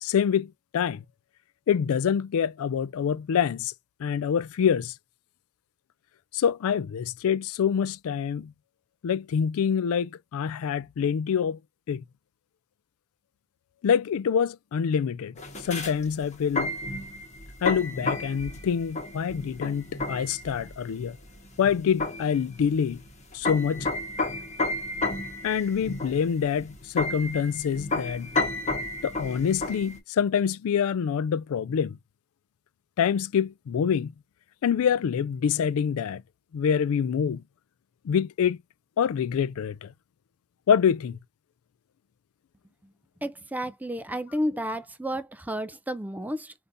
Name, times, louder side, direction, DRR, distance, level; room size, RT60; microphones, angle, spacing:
voice 1, 0.0-1.0 1.7-3.7 4.0-4.9 6.3-8.5 9.0-11.6 11.9-12.0 13.8-15.3 15.6-16.8 17.6-21.2 21.6-23.0 23.3-23.9 25.4-28.3 29.0-32.0 33.0-34.1 34.6-36.2 36.5-37.4 38.0-38.6 39.0-39.9 40.7-41.2, left 7 dB, 70° left, 0.3 m, -26 dB
sound 1, 15.4-30.0, left 2 dB, 35° left, 1.3 m, -32 dB
voice 2, 43.2-46.5, equal, 5° right, 0.4 m, -31 dB
5.1 x 2.7 x 2.6 m
head